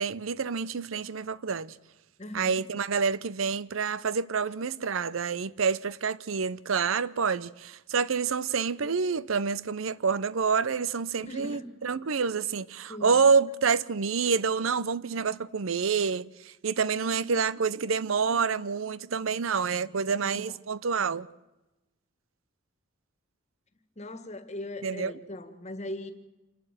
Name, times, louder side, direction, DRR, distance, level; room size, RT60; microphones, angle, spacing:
voice 1, 0.0-1.7 2.3-21.3 24.8-25.2, right 5 dB, 75° right, 0.6 m, -28 dB
voice 2, 2.2-2.6 11.2-11.7 12.9-13.2 20.2-20.6 23.9-26.1, left 1 dB, 35° left, 1.8 m, -39 dB
27.5 x 12.0 x 9.0 m
head